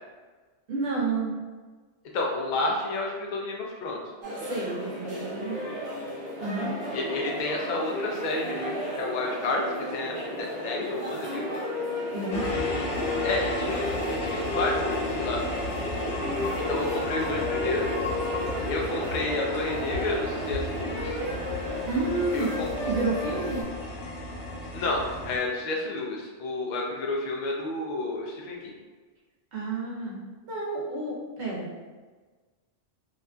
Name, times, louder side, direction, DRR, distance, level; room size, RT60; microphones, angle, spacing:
voice 1, 0.7-1.3 4.4-5.6 6.4-6.7 12.1-12.7 21.8-23.6 29.5-30.2 30.5-31.7, right 3 dB, 70° right, -4 dB, 1.0 m, -30 dB
voice 2, 2.1-4.0 6.9-9.7 9.9-11.5 12.5-12.9 13.2-15.4 16.7-17.9 18.7-21.2 22.3-22.7 24.7-28.7, left 2 dB, 60° left, -1 dB, 0.5 m, -30 dB
sound 1, 4.2-23.6, left 1 dB, 25° right, 0.7 m, -33 dB
sound 2, 12.3-25.4, left 1 dB, 75° left, 0.8 m, -33 dB
2.7 x 2.4 x 2.2 m, 1.4 s
omnidirectional pair, 1.2 m